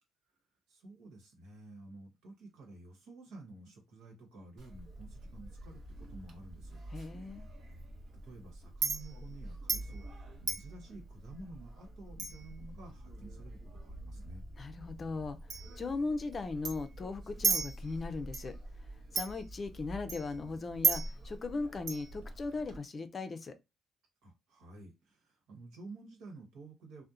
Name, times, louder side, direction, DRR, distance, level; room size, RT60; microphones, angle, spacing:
voice 1, 0.7-6.8 8.2-14.4 24.2-27.0, right 2 dB, 90° right, 1.0 m, -51 dB
Chink clink, 4.6-22.8, right 3 dB, 60° right, 0.9 m, -39 dB
voice 2, 6.9-7.5 14.6-15.4 15.8-18.6 19.1-23.5, left 3 dB, 40° left, 0.4 m, -38 dB
2.8 x 2.1 x 2.4 m
cardioid pair, 90°, 0 cm